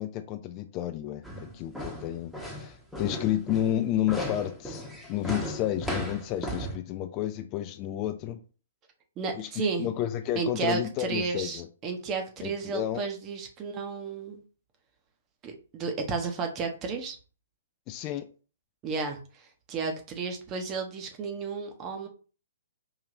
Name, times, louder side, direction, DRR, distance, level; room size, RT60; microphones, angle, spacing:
voice 1, 0.0-8.4 9.4-9.5 9.8-11.7 12.4-13.0 17.9-18.3, left 12 dB, 30° left, 9 dB, 0.3 m, -31 dB
sound 1, 1.2-6.8, equal, ahead, 0.9 m, -36 dB
voice 2, 9.2-9.9 10.4-14.4 15.4-17.2 18.8-22.1, right 4 dB, 25° right, 4 dB, 0.8 m, -33 dB
4.8 x 2.8 x 2.6 m, 0.37 s
figure-of-eight pair, 125°, 0 cm